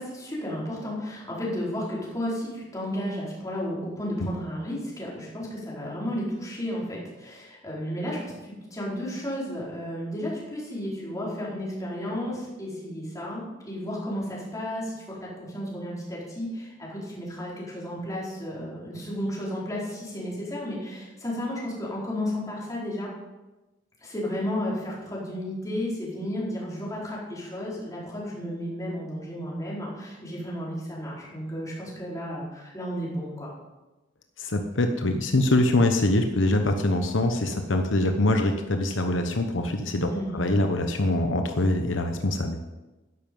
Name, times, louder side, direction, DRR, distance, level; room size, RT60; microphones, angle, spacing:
voice 1, 0.0-23.1 24.0-33.5 40.1-40.4, equal, 20° left, -6 dB, 4.6 m, -33 dB
voice 2, 34.4-42.6, left 1 dB, 75° left, 5 dB, 1.0 m, -24 dB
12.5 x 10.5 x 5.4 m, 1.1 s
head